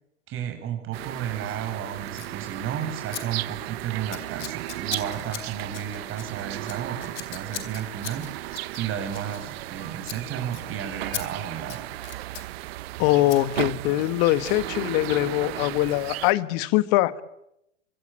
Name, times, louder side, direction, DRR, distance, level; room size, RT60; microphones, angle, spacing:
voice 1, 0.3-11.9, right 9 dB, 35° right, 5 dB, 6.9 m, -33 dB
sound 1, 0.9-16.3, right 17 dB, 55° right, 1.1 m, -35 dB
Scissors, 2.1-2.3 3.1-3.2 3.5-3.7 4.1-9.8 10.0-10.2 10.5-10.6 11.1-11.2 11.6-12.5 13.3-13.4, left 10 dB, 65° left, 4.0 m, -38 dB
voice 2, 13.0-17.2, left 16 dB, 45° left, 14 dB, 1.8 m, -22 dB
25.5 x 24.5 x 8.7 m, 0.80 s
hypercardioid pair, 110°, 38 cm